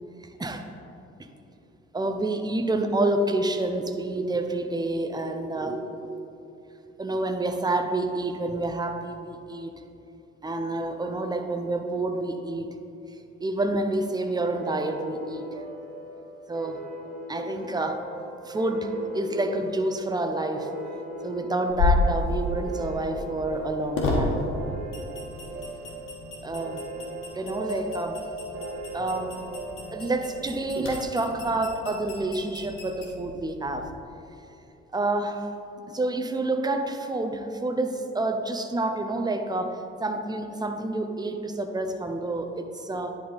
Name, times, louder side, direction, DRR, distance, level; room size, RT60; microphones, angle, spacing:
voice 1, 1.9-6.3 7.0-9.7 10.4-12.7 13.4-15.5 16.5-16.8 17.3-18.0 18.4-20.7 21.2-24.5 26.4-26.8 27.3-28.2 28.9-29.4 29.9-33.9 34.9-35.5 35.9-43.2, right 2 dB, 10° right, 6 dB, 0.6 m, -28 dB
sound 1, 14.5-31.6, right 1 dB, 65° right, 1.0 m, -39 dB
sound 2, 21.7-33.9, left 3 dB, 60° left, 1.4 m, -32 dB
10.0 x 3.5 x 4.0 m, 2.7 s
figure-of-eight pair, 45°, 36 cm